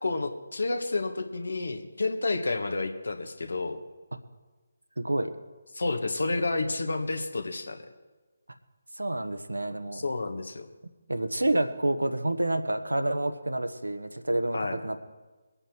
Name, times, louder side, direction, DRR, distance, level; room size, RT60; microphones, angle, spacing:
voice 1, 0.0-3.8 5.7-7.8 9.9-10.7 14.5-14.8, left 3 dB, 70° left, 6 dB, 1.6 m, -30 dB
voice 2, 5.0-5.3 9.0-10.0 11.1-15.0, right 1 dB, 85° right, 9 dB, 1.1 m, -28 dB
22.5 x 8.9 x 4.5 m, 1.2 s
figure-of-eight pair, 150°, 0 cm